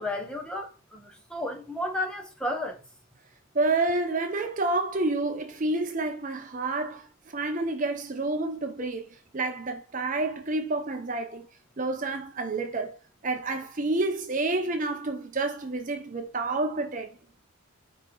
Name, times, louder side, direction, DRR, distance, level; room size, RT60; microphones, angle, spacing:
voice 1, 0.0-2.8, left 1 dB, 5° left, 0.9 m, -33 dB
voice 2, 3.5-7.1 7.3-9.1 9.3-11.5 11.8-13.0 13.2-17.1, right 2 dB, 35° right, 0.6 m, -29 dB
5.1 x 4.2 x 4.5 m
head